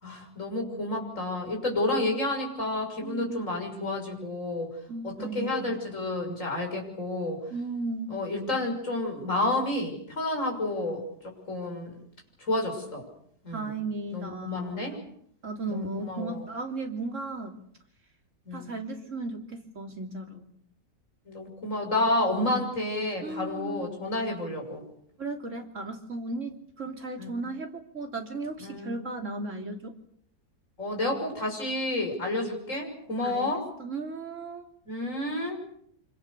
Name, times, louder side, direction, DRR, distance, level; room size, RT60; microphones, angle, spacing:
voice 1, 0.0-4.7 5.0-7.4 8.1-11.9 12.4-13.1 13.4-13.7 14.1-15.0 15.7-16.4 18.5-18.7 21.3-24.8 27.2-27.3 28.6-28.9 30.8-33.6 34.9-35.6, left 2 dB, 45° left, 1 dB, 6.7 m, -30 dB
voice 2, 3.0-3.4 4.9-5.7 7.5-8.1 13.5-14.8 15.4-17.6 18.5-20.5 23.2-23.9 25.2-30.0 33.2-33.5 33.8-34.7, right 3 dB, 45° right, 3 dB, 3.5 m, -35 dB
26.5 x 24.5 x 6.8 m, 0.67 s
omnidirectional pair, 1.8 m